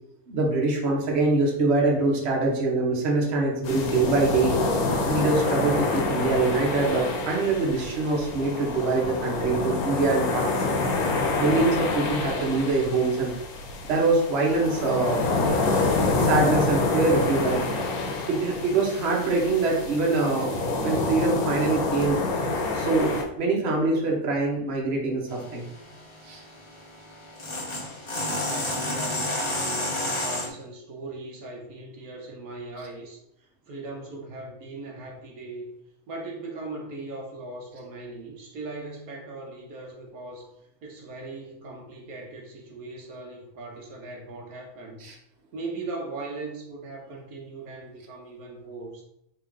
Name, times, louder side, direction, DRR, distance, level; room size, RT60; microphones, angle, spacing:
voice 1, 0.3-4.6 5.1-10.9 11.4-13.3 13.8-15.2 16.2-17.6 18.3-20.5 20.8-22.2 22.7-25.7 26.2-26.4 45.0-45.1, right 3 dB, 50° right, -1 dB, 1.2 m, -24 dB
sound 1, 3.6-23.2, left 3 dB, 85° left, 1.3 m, -27 dB
sound 2, 25.3-30.5, left 1 dB, 30° left, 0.6 m, -31 dB
voice 2, 28.2-35.7 36.1-45.0 45.5-49.0, right 2 dB, 75° right, 0 dB, 1.3 m, -39 dB
3.7 x 3.0 x 4.7 m, 0.76 s
omnidirectional pair, 1.5 m